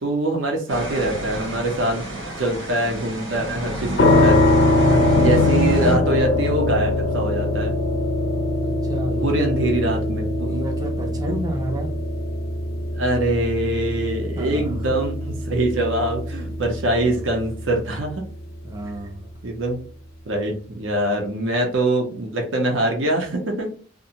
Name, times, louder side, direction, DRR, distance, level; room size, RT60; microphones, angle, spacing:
voice 1, 0.0-4.4 5.2-7.7 9.2-10.5 11.3-11.4 12.9-18.2 19.4-19.8 20.3-23.7, right 1 dB, 70° right, 2 dB, 0.7 m, -24 dB
sound 1, 0.7-6.0, equal, 85° right, 1.2 m, -27 dB
sound 2, 4.0-18.8, left 2 dB, 50° left, 0.4 m, -22 dB
voice 2, 4.8-5.1 8.6-9.6 10.5-12.0 14.4-14.8 18.6-19.3, right 1 dB, 20° right, 2 dB, 0.5 m, -30 dB
2.5 x 2.1 x 2.8 m, 0.43 s
head